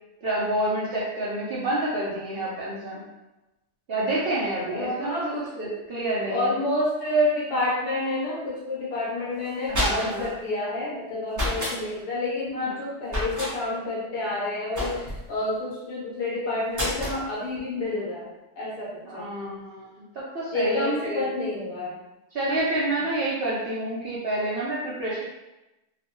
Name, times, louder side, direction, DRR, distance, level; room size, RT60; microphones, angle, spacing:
voice 1, 0.2-3.0 3.9-6.5 9.7-10.3 19.1-19.9 20.1-21.2 22.3-25.2, right 1 dB, 80° right, -7 dB, 0.5 m, -28 dB
voice 2, 4.6-5.8 6.2-18.3 18.6-19.3 20.5-22.0, left 1 dB, 80° left, -5 dB, 1.2 m, -29 dB
sound 1, 9.4-10.3 11.3-11.8 13.1-13.5 14.7-15.3 16.7-17.2, left 1 dB, 20° right, 0.5 m, -28 dB
2.9 x 2.0 x 2.9 m, 0.98 s
omnidirectional pair, 1.7 m